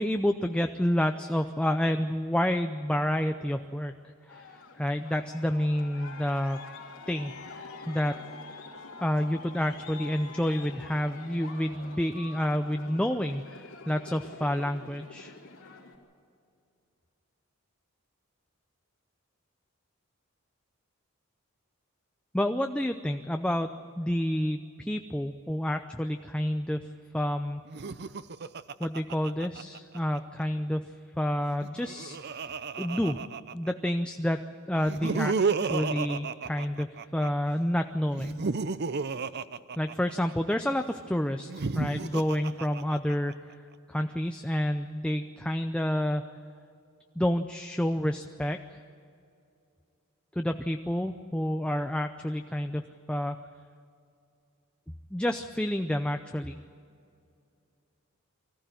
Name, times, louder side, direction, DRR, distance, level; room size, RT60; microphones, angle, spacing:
voice 1, 0.0-3.9 4.3-4.5 4.8-6.6 7.1-7.3 7.9-8.2 9.0-15.4 22.3-23.7 24.0-26.9 27.1-27.6 28.8-32.2 32.8-33.2 33.5-34.4 34.7-36.9 37.1-38.4 39.8-41.5 41.8-43.6 43.9-46.3 47.2-48.8 50.4-52.8 53.1-53.4 55.1-56.6, equal, 5° left, 6 dB, 0.5 m, -29 dB
Aircraft, 4.3-15.9, left 3 dB, 80° left, 3.2 m, -46 dB
Laughter, 27.7-30.2 31.5-33.9 34.8-37.3 38.1-40.5 41.4-43.3, right 4 dB, 50° right, 0.6 m, -32 dB
24.5 x 15.0 x 9.2 m, 2.4 s
head